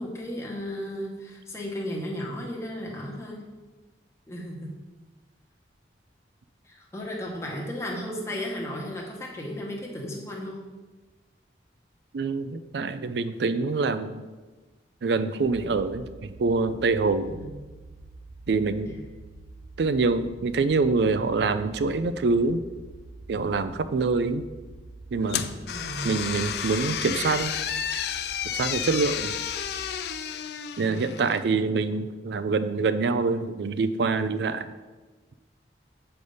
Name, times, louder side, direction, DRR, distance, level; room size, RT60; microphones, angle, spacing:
voice 1, 0.0-3.4 4.3-4.8 6.7-10.6 17.3-17.5 25.7-26.1, equal, 15° left, -2 dB, 0.9 m, -35 dB
voice 2, 12.1-14.2 15.0-17.4 18.5-18.9 19.8-22.6 23.3-24.5 25.1-25.5 26.0-27.5 28.4-29.3 30.8-34.7, right 4 dB, 70° right, 12 dB, 0.4 m, -25 dB
sound 1, 15.4-29.9, right 2 dB, 10° right, 0.6 m, -46 dB
sound 2, 25.3-31.4, left 8 dB, 65° left, 0.4 m, -31 dB
7.8 x 3.4 x 5.4 m, 1.3 s
head